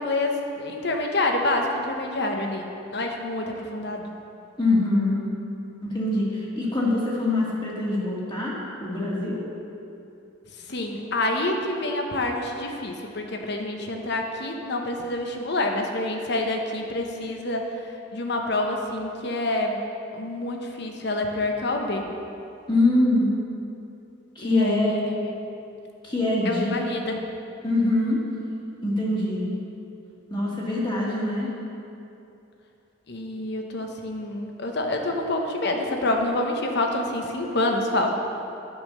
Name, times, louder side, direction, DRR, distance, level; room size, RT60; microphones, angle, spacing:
voice 1, 0.0-4.1 10.6-17.8 18.1-19.8 20.1-22.1 24.4-25.4 26.4-27.2 33.1-38.1, left 2 dB, 60° left, 3 dB, 1.0 m, -27 dB
voice 2, 4.6-5.2 5.8-8.5 8.8-9.4 22.7-23.3 24.4-24.9 26.0-26.7 27.6-28.2 28.8-29.5 30.3-31.5, left 2 dB, 25° left, -6 dB, 1.8 m, -23 dB
9.6 x 5.4 x 6.7 m, 2.7 s
head